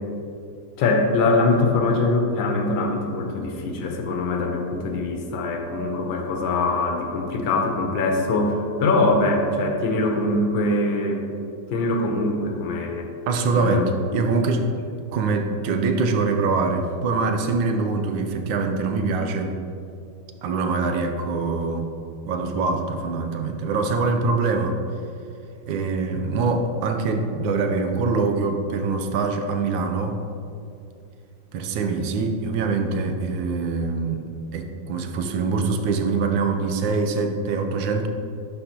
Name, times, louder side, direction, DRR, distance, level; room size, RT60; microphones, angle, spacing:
voice 1, 0.8-11.2 11.7-13.1 13.5-13.8, left 2 dB, 90° left, 2 dB, 1.6 m, -23 dB
voice 2, 13.3-14.7 15.1-19.5 20.4-21.9 22.3-24.8 25.7-30.2 31.5-34.2 34.5-38.1, right 4 dB, 85° right, 5 dB, 1.3 m, -24 dB
11.0 x 4.4 x 2.8 m, 2.5 s
omnidirectional pair, 2.0 m